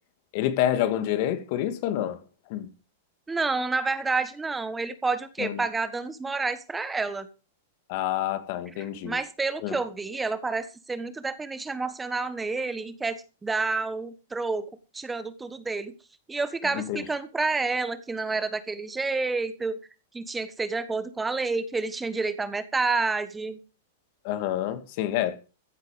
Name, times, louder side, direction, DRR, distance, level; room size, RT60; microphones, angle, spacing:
voice 1, 0.3-2.2 2.5-2.7 5.4-5.6 7.9-9.2 9.6-9.8 16.7-17.0 24.2-25.4, left 12 dB, 55° left, 2.4 m, -28 dB
voice 2, 3.3-7.3 9.0-15.9 16.3-19.8 20.1-23.6, right 3 dB, 10° right, 1.4 m, -29 dB
15.5 x 10.0 x 5.2 m
hypercardioid pair, 115°, 0 cm